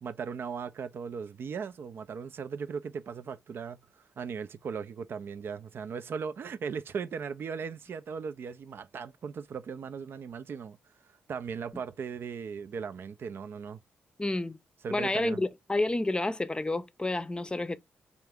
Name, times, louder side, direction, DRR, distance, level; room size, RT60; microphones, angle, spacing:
voice 1, 0.0-3.8 4.2-10.8 11.3-13.8 14.8-15.4, right 6 dB, 60° right, 0.4 m, -37 dB
voice 2, 14.2-14.6 14.9-17.8, left 2 dB, 20° left, 0.5 m, -30 dB
3.7 x 2.4 x 3.4 m
hypercardioid pair, 45°, 4 cm